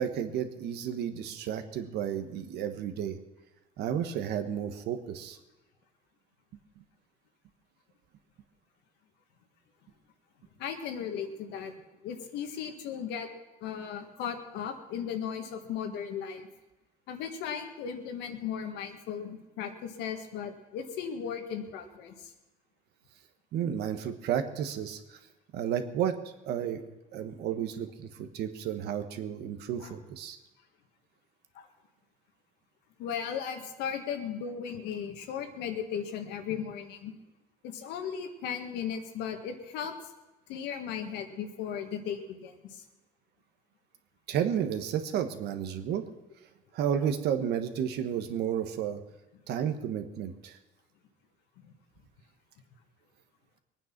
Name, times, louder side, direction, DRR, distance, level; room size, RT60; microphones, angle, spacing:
voice 1, 0.0-3.2 3.8-5.4 23.5-25.2 25.5-26.1 26.4-26.8 27.1-30.4 44.3-46.1 46.7-49.0 49.5-50.6, right 9 dB, 75° right, 8 dB, 1.4 m, -32 dB
voice 2, 10.6-11.7 12.0-13.3 13.6-16.5 17.1-22.3 29.8-29.9 31.6-31.7 33.0-37.1 37.6-40.1 40.5-42.8 51.6-51.7, left 7 dB, 90° left, 5 dB, 1.8 m, -36 dB
21.5 x 9.2 x 6.0 m, 1.1 s
cardioid pair, 110°, 17 cm